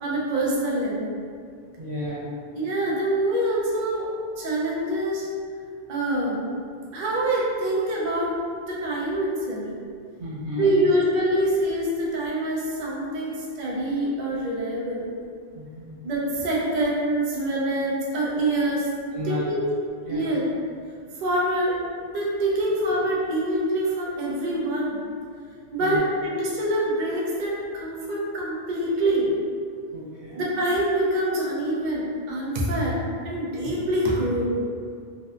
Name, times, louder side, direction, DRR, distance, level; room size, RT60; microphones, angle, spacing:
voice 1, 0.0-1.2 2.6-4.1 4.4-5.2 5.9-6.4 6.9-8.4 8.7-9.7 10.6-15.1 16.0-18.9 19.2-19.6 20.0-20.4 21.2-21.8 22.0-25.0 25.7-29.3 30.4-33.0 33.2-34.5, right 1 dB, 55° right, -6 dB, 0.5 m, -25 dB
voice 2, 1.8-2.3 10.2-10.9 15.5-16.0 19.1-19.4 20.1-20.3 25.8-26.0 29.9-30.4, left 2 dB, 80° right, -8 dB, 1.1 m, -32 dB
2.6 x 2.1 x 2.4 m, 2.2 s
omnidirectional pair, 1.2 m